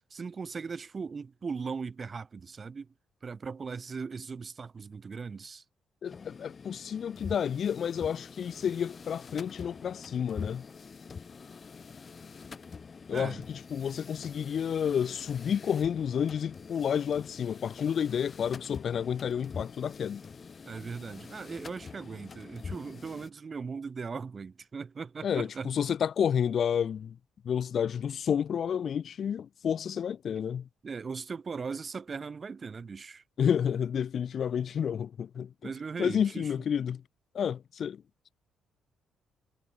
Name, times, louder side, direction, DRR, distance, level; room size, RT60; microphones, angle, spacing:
voice 1, 0.1-2.9 3.2-5.6 13.1-13.4 20.6-25.7 30.8-33.2 35.6-36.5, right 5 dB, 35° right, 1.0 m, -39 dB
voice 2, 6.0-10.6 13.1-20.2 25.2-27.2 27.4-30.7 33.4-35.5 36.0-37.0 37.3-38.0, left 8 dB, 55° left, 0.6 m, -30 dB
sound 1, 6.1-23.3, left 5 dB, 40° left, 2.2 m, -45 dB
cardioid pair, 90°, 0 cm